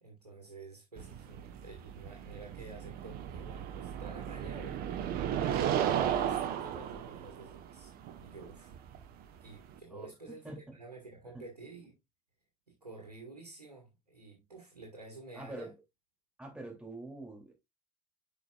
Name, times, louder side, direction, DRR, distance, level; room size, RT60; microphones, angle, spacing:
voice 1, 0.0-4.8 6.2-7.9 8.2-8.7 9.4-11.9 12.7-15.7, right 3 dB, 90° right, 1.7 m, -50 dB
sound 1, 1.0-9.8, right 9 dB, 50° right, 1.1 m, -35 dB
voice 2, 9.9-10.8 11.3-11.4 15.3-15.7 16.4-17.5, right 2 dB, 5° right, 2.9 m, -45 dB
10.5 x 4.8 x 2.4 m
figure-of-eight pair, 65°, 20 cm